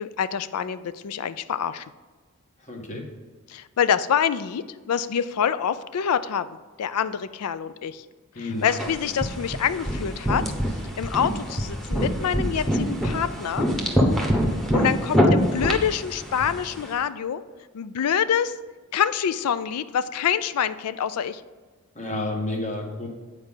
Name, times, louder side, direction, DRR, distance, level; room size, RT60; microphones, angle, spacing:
voice 1, 0.0-1.9 3.5-6.5 6.8-8.0 8.6-10.4 11.0-13.7 14.7-17.4 17.7-18.5 18.9-21.4, left 8 dB, 85° left, 14 dB, 0.4 m, -26 dB
voice 2, 2.6-3.1 8.3-8.7 21.9-23.1, left 2 dB, 35° left, 2 dB, 1.4 m, -30 dB
sound 1, 8.7-16.9, equal, ahead, 1.1 m, -25 dB
8.8 x 4.7 x 5.5 m, 1.4 s
head